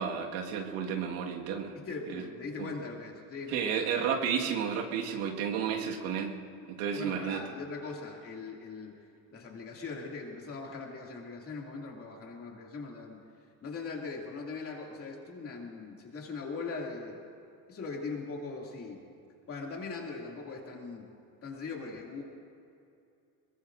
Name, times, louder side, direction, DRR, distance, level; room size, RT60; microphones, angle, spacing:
voice 1, 0.0-1.7 2.1-2.2 2.6-2.7 3.5-6.4 6.7-7.4, right 7 dB, 90° right, 1 dB, 1.8 m, -32 dB
voice 2, 1.7-3.9 6.9-8.9 9.3-13.2 13.6-17.2 17.7-19.0 19.5-21.0 21.4-22.2, left 4 dB, 30° left, -1 dB, 2.5 m, -40 dB
22.5 x 22.0 x 2.6 m, 2.6 s
cardioid pair, 145°, 42 cm